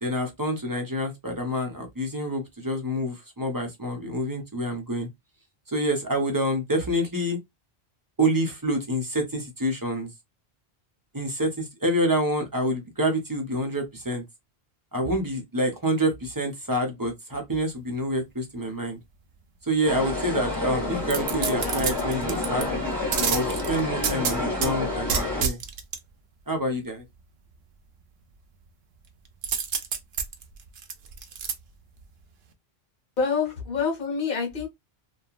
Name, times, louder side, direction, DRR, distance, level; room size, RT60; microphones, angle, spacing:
voice 1, 0.0-5.1 5.7-7.4 8.2-10.1 11.1-14.2 14.9-19.0 19.6-22.7 23.3-25.6 26.5-27.0, right 1 dB, 25° right, 0.6 m, -27 dB
sound 1, 19.9-25.4, left 2 dB, ahead, 1.5 m, -29 dB
sound 2, 21.1-22.6 23.1-24.7 25.1-26.0 29.4-31.5 32.0-32.1, right 7 dB, 75° right, 0.8 m, -28 dB
voice 2, 33.2-34.7, left 5 dB, 55° left, 1.2 m, -26 dB
2.9 x 2.3 x 2.4 m
omnidirectional pair, 1.1 m